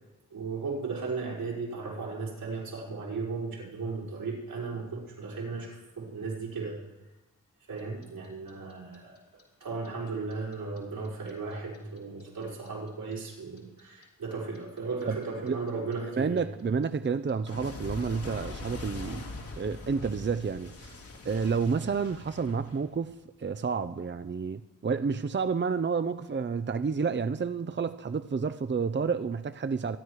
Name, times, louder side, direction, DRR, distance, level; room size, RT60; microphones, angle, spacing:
voice 1, 0.3-6.8 7.7-9.1 9.6-16.4, right 4 dB, 85° right, 5.2 m, -36 dB
Clock, 7.8-10.8 11.0-14.0 14.3-23.2, left 3 dB, 80° left, 3.5 m, -42 dB
voice 2, 16.1-20.9 21.2-23.1 23.4-30.0, right 5 dB, 35° right, 0.7 m, -30 dB
25.5 x 9.5 x 4.8 m
cardioid pair, 40°, 33 cm